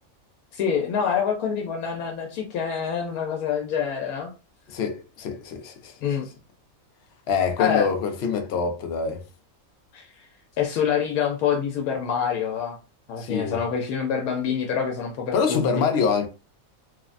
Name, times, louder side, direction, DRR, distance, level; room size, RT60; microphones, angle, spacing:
voice 1, 0.5-4.3 6.0-6.3 7.6-7.9 9.9-10.1 10.6-12.8 13.1-15.6, left 7 dB, 85° left, 1.1 m, -26 dB
voice 2, 4.7-5.9 7.3-9.2 13.2-13.6 15.3-16.3, left 6 dB, 60° left, 0.7 m, -25 dB
3.2 x 2.1 x 2.4 m
omnidirectional pair, 1.5 m